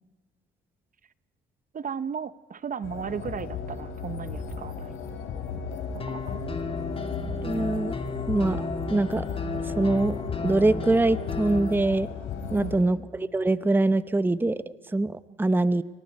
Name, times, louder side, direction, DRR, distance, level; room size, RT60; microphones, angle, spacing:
voice 1, 1.7-5.0 5.9-6.4 12.6-12.7 15.3-15.4, right 7 dB, 40° right, 15 dB, 0.8 m, -35 dB
sound 1, 2.8-12.8, left 5 dB, 85° left, 4.0 m, -34 dB
sound 2, 6.0-11.8, left 3 dB, 30° left, 2.6 m, -35 dB
voice 2, 7.4-7.9 8.3-9.3 9.6-10.2 10.4-12.1 12.5-15.8, right 2 dB, 10° right, 14 dB, 0.8 m, -24 dB
28.5 x 24.5 x 5.4 m, 1.4 s
cardioid pair, 90°, 20 cm